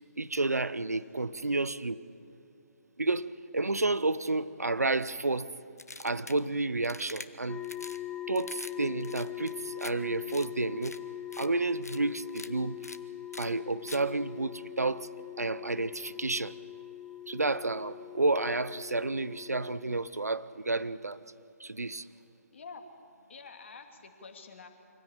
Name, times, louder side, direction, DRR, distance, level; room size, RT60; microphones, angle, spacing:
voice 1, 0.2-2.0 3.0-5.5 6.0-7.6 8.3-11.0 11.4-12.9 13.4-15.1 15.4-16.5 17.3-21.2 21.6-22.1, right 2 dB, 75° right, 0.8 m, -31 dB
sound 1, 5.8-6.4 6.8-7.3 7.6-8.0 8.3-8.7 9.0-9.9 10.3-10.5 10.8-11.0 11.3-11.5 11.8-12.0 12.3-12.5 12.8-13.0 13.3-13.5 13.9-14.0, left 2 dB, 75° left, 1.2 m, -44 dB
sound 2, 7.5-20.0, left 12 dB, 10° left, 0.4 m, -42 dB
voice 2, 22.5-22.8 23.3-24.7, left 5 dB, 50° left, 2.4 m, -47 dB
24.5 x 16.5 x 8.9 m
figure-of-eight pair, 135°, 9 cm